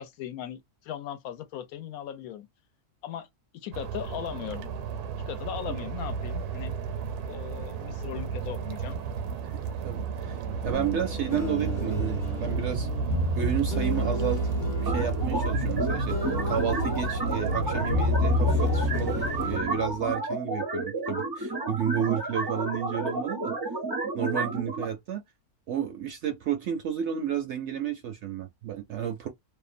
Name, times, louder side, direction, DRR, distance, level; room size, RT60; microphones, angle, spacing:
voice 1, 0.0-2.5 3.0-3.3 3.5-4.7 5.3-6.7 7.3-9.0, left 10 dB, 75° left, 1.0 m, -38 dB
sound 1, 3.7-19.6, right 4 dB, 85° right, 1.1 m, -32 dB
voice 2, 9.8-14.5 14.8-19.2 19.4-23.6 24.1-25.2 25.7-29.3, right 8 dB, 65° right, 0.7 m, -32 dB
sound 2, 10.7-20.1, left 2 dB, 40° left, 0.8 m, -31 dB
sound 3, 14.9-24.8, right 2 dB, 40° right, 0.3 m, -31 dB
2.7 x 2.1 x 2.5 m
omnidirectional pair, 1.6 m